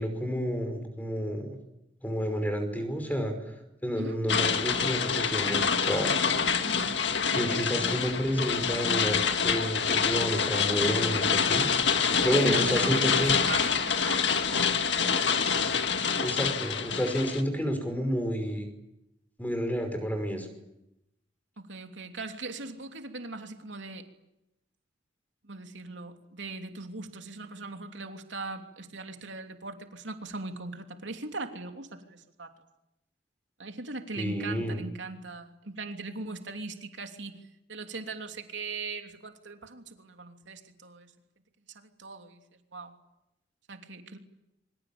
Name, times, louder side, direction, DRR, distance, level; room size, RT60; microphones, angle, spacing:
voice 1, 0.0-1.6 2.0-3.3 3.8-6.1 7.3-11.7 12.2-13.4 16.2-18.7 19.4-20.5 34.2-34.8, equal, 10° left, 6 dB, 5.5 m, -30 dB
sound 1, 4.3-17.4, left 6 dB, 70° left, 2.0 m, -26 dB
voice 2, 6.6-7.5 12.4-14.8 21.6-24.1 25.4-32.5 33.6-37.4 37.7-41.1 41.7-42.4 42.7-42.9 43.7-44.2, right 3 dB, 85° right, 5 dB, 3.1 m, -40 dB
27.0 x 25.0 x 8.8 m, 0.89 s
head